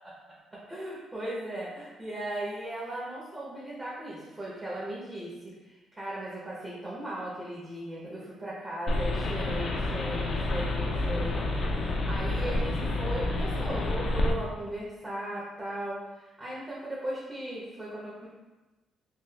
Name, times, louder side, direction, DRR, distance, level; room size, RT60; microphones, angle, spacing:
voice 1, 0.7-18.3, right 1 dB, 20° right, -8 dB, 0.9 m, -37 dB
sound 1, 8.9-14.3, left 2 dB, 60° left, 0.4 m, -29 dB
4.2 x 2.5 x 2.3 m, 1.2 s
cardioid pair, 90°, 0 cm